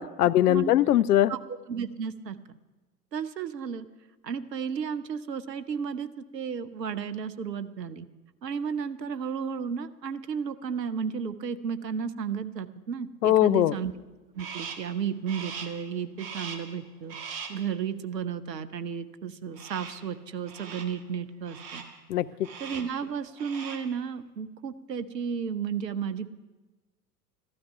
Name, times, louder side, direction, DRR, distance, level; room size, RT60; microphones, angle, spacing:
voice 1, 0.0-1.3 13.2-13.7 22.1-22.3, left 12 dB, 65° left, 16 dB, 0.6 m, -21 dB
voice 2, 1.3-2.6 3.1-3.8 4.2-8.1 8.4-13.9 14.3-21.8 22.6-26.3, right 7 dB, 75° right, 12 dB, 0.9 m, -33 dB
Crow, 14.4-14.9 15.3-15.8 16.2-16.8 17.1-17.7 19.6-20.1 20.5-21.0 21.5-22.0 22.4-23.0 23.3-23.9, right 6 dB, 45° right, 1.8 m, -41 dB
14.0 x 12.0 x 5.7 m, 1.2 s
figure-of-eight pair, 80°, 49 cm